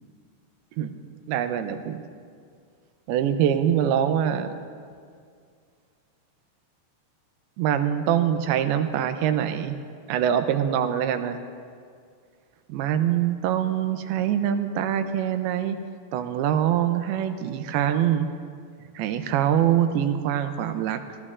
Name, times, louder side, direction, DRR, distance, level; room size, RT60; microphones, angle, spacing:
voice 1, 1.3-2.0 3.1-4.6 7.6-9.8 10.1-11.4 12.7-15.8 16.1-18.3 19.0-21.0, right 10 dB, 80° right, 9 dB, 2.5 m, -24 dB
24.0 x 15.5 x 2.5 m, 2.2 s
omnidirectional pair, 4.8 m